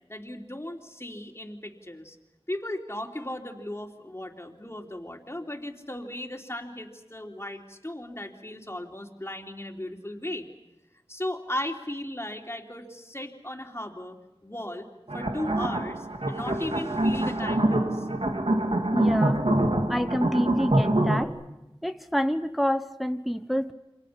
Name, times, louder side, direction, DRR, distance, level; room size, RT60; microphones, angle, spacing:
voice 1, 0.1-2.2 2.5-10.5 11.1-14.2 14.4-14.9 15.1-18.1, left 1 dB, 25° left, 1 dB, 3.4 m, -36 dB
sound 1, 15.1-21.2, right 1 dB, 80° right, 2.5 m, -25 dB
voice 2, 18.9-19.4 19.9-21.3 21.8-23.7, equal, ahead, 8 dB, 1.0 m, -27 dB
29.5 x 26.0 x 5.8 m, 0.95 s
wide cardioid pair, 40°, 10 cm